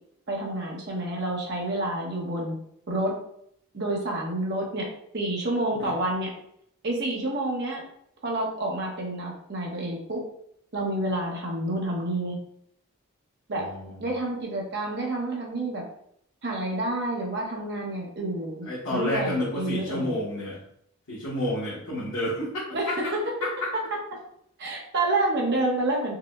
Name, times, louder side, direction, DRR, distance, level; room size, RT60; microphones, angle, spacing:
voice 1, 0.3-2.6 2.9-3.2 3.7-4.9 5.1-6.3 6.8-7.8 8.2-10.2 10.7-12.4 13.5-13.6 14.0-15.8 16.4-20.2 22.7-23.2 24.6-26.2, right 2 dB, 50° right, -2 dB, 0.9 m, -29 dB
voice 2, 13.5-14.1 18.6-20.6 21.1-23.1 23.4-23.5, left 1 dB, 75° left, -8 dB, 1.0 m, -30 dB
4.7 x 2.1 x 2.4 m, 0.70 s
head